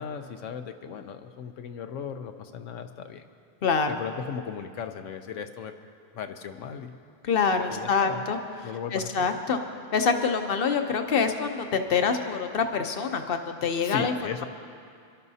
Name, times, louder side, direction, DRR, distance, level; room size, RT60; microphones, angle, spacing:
voice 1, 0.0-3.2 3.9-5.7 6.1-7.0 7.7-8.3 8.6-9.3 13.8-14.4, left 7 dB, 75° left, 7 dB, 1.0 m, -36 dB
voice 2, 3.6-4.0 7.2-8.4 8.9-9.6 9.9-14.1, left 5 dB, 50° left, 6 dB, 0.9 m, -25 dB
28.0 x 12.0 x 2.8 m, 2.3 s
omnidirectional pair, 1.3 m